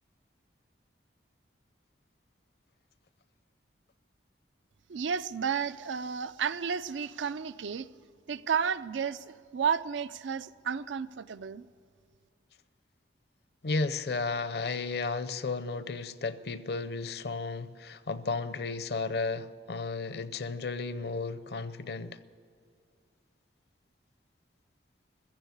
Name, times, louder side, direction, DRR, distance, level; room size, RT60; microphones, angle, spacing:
voice 1, 4.9-7.9 8.3-11.7, right 7 dB, 85° right, 0.5 m, -32 dB
voice 2, 13.6-22.2, left 3 dB, 60° left, 0.6 m, -33 dB
15.0 x 7.2 x 9.5 m
head